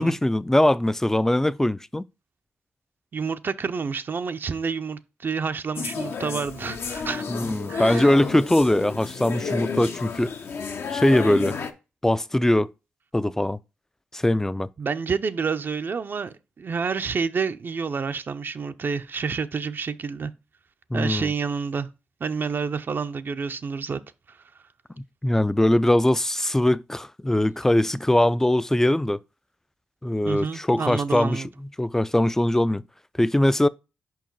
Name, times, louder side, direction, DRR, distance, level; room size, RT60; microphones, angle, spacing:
voice 1, 0.0-2.0 7.3-10.3 10.9-11.6 12.0-12.7 13.1-13.6 14.1-14.7 20.9-21.3 25.0-29.2 30.0-32.8 33.2-33.7, left 1 dB, 10° left, 0.3 m, -21 dB
voice 2, 3.1-7.2 7.7-8.1 14.8-20.3 20.9-21.9 22.2-24.0 24.3-24.4 30.3-31.5, right 5 dB, 50° right, 0.5 m, -29 dB
sound 1, 5.8-11.7, left 5 dB, 60° left, 0.7 m, -31 dB
5.2 x 4.7 x 4.5 m
supercardioid pair, 55°, 5 cm